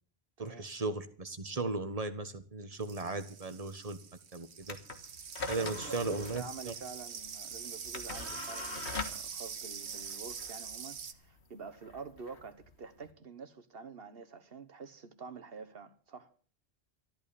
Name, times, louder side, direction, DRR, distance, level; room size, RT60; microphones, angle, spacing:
voice 1, 0.4-4.0 4.3-4.8 5.5-6.7, right 3 dB, 35° right, 1.3 m, -36 dB
sound 1, 2.7-11.1, right 7 dB, 80° right, 1.3 m, -44 dB
sound 2, 4.6-13.1, left 4 dB, 80° left, 1.8 m, -44 dB
voice 2, 5.6-16.3, right 5 dB, 60° right, 1.5 m, -47 dB
13.5 x 11.5 x 6.9 m
omnidirectional pair, 1.1 m